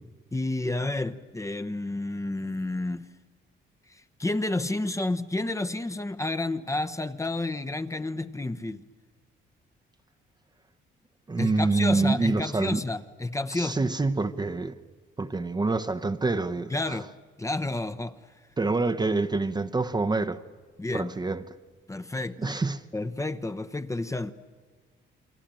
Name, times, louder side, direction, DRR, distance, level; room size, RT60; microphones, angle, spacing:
voice 1, 0.3-3.1 3.9-8.8 11.4-13.9 16.7-17.1 17.4-18.2 20.8-21.1 21.9-22.5 22.9-24.3, left 2 dB, 15° left, 1.0 m, -30 dB
voice 2, 11.3-12.8 13.5-14.8 15.2-17.0 18.6-20.4 20.9-21.4 22.4-22.8, right 3 dB, 20° right, 1.0 m, -26 dB
29.0 x 22.5 x 9.0 m
cardioid pair, 90°, 20 cm